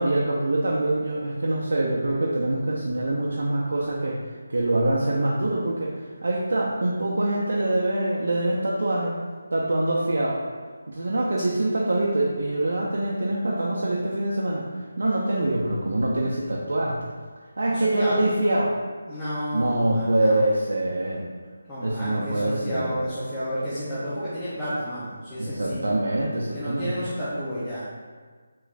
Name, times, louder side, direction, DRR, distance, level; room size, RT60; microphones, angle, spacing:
voice 1, 0.0-4.2 4.5-9.2 9.5-10.4 10.9-14.7 15.0-17.1 17.6-18.8 19.5-21.3 21.8-22.9 25.4-27.0, right 1 dB, 70° right, -4 dB, 0.4 m, -24 dB
voice 2, 17.7-18.2 19.1-20.4 21.7-25.8 26.5-27.9, equal, 5° left, -14 dB, 0.3 m, -31 dB
3.3 x 3.0 x 2.4 m, 1.5 s
figure-of-eight pair, 180°, 0 cm